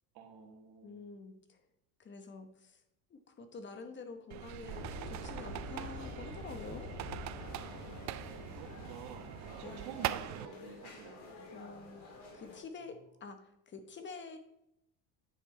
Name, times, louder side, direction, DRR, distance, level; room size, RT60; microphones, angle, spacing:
voice 1, 0.1-1.1 7.8-8.0 8.3-11.2, right 6 dB, 75° right, 3 dB, 1.8 m, -50 dB
voice 2, 0.8-1.6 2.0-2.8 3.1-6.9 9.6-10.0 11.5-12.1 12.3-14.4, left 4 dB, 30° left, 7 dB, 1.1 m, -48 dB
sound 1, 4.3-10.5, right 14 dB, 50° right, 0.4 m, -42 dB
sound 2, 4.7-9.8, left 3 dB, 60° left, 3.0 m, -47 dB
sound 3, 7.3-12.6, left 2 dB, 75° left, 2.8 m, -52 dB
10.0 x 4.4 x 4.2 m, 0.81 s
cardioid pair, 125°, 38 cm